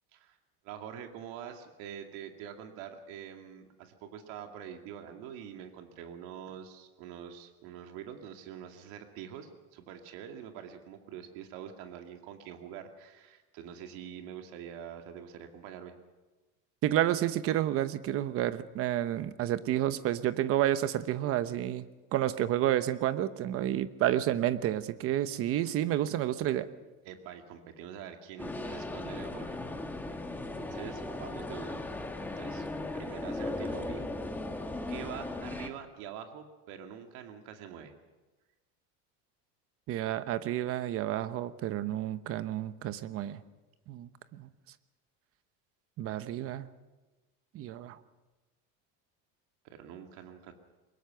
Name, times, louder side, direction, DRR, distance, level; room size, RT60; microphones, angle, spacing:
voice 1, 0.6-15.9 27.0-29.6 30.6-31.8 32.4-32.7 32.9-34.1 34.9-37.9 49.6-50.5, right 9 dB, 75° right, 4 dB, 2.3 m, -45 dB
voice 2, 16.8-21.8 22.1-26.7 39.9-43.4 43.9-44.5 46.0-46.7 47.5-48.0, right 12 dB, 40° right, 12 dB, 1.0 m, -30 dB
sound 1, 28.4-35.7, left 2 dB, 5° left, 1.3 m, -37 dB
23.0 x 21.5 x 5.8 m, 1.2 s
cardioid pair, 170°, 34 cm